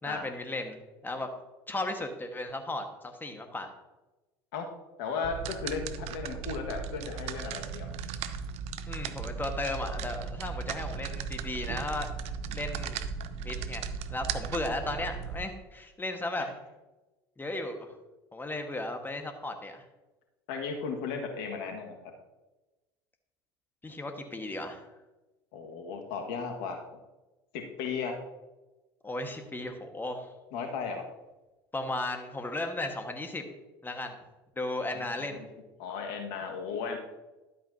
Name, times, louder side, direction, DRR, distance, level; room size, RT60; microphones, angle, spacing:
voice 1, 0.0-1.3 1.7-3.7 8.9-12.1 12.5-13.0 13.4-16.5 17.4-17.9 18.3-19.8 23.8-24.9 29.0-30.3 31.7-33.4 33.8-34.2 34.5-35.5, left 2 dB, 15° left, 5 dB, 1.4 m, -35 dB
voice 2, 5.0-7.9 16.4-16.5 20.5-22.1 25.5-26.8 27.5-28.1 30.5-31.0 34.9-35.5 35.8-37.0, left 5 dB, 65° left, 3 dB, 1.7 m, -35 dB
sound 1, 5.2-15.5, right 6 dB, 55° right, 0.6 m, -37 dB
11.5 x 8.5 x 2.8 m, 1.1 s
hypercardioid pair, 70°, 13 cm